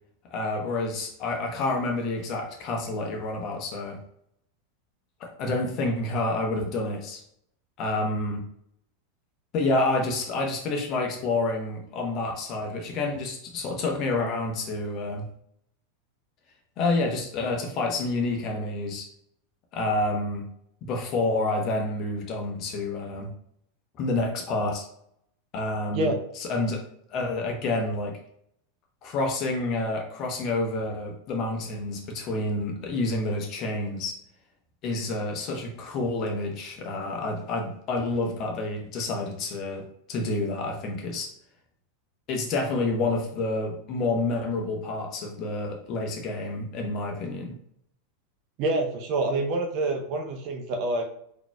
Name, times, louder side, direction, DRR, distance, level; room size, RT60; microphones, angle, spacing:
voice 1, 0.3-4.0 5.2-7.2 7.8-8.4 9.5-15.3 16.8-19.1 19.7-20.5 20.8-23.3 24.0-24.9 25.5-26.8 27.1-28.1 29.0-34.1 34.8-41.3 42.3-47.5, left 2 dB, 45° left, 1 dB, 0.8 m, -28 dB
voice 2, 48.6-51.0, right 2 dB, 50° right, 2 dB, 0.6 m, -27 dB
3.9 x 2.9 x 2.2 m, 0.70 s
figure-of-eight pair, 90°, 0 cm